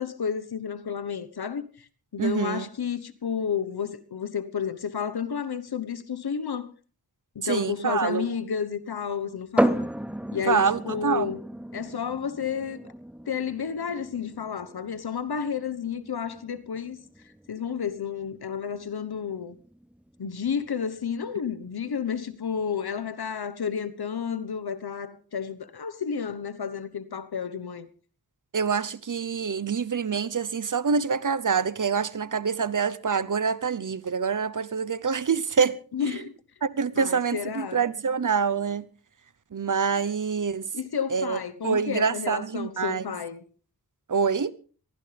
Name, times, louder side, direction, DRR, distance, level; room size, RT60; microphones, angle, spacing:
voice 1, 0.0-1.9 2.1-6.7 7.3-9.9 10.3-11.4 11.7-12.9 13.3-17.0 17.5-19.6 20.2-27.9 35.9-36.3 37.0-37.8 40.7-43.4, left 7 dB, 80° left, 1.2 m, -31 dB
voice 2, 2.2-2.7 7.4-8.2 10.5-11.3 28.5-36.1 36.6-38.9 39.5-40.7 41.1-43.0 44.1-44.5, right 6 dB, 55° right, 0.9 m, -26 dB
sound 1, 9.6-23.1, right 1 dB, 5° right, 0.7 m, -34 dB
23.0 x 15.0 x 3.4 m
wide cardioid pair, 55°, 37 cm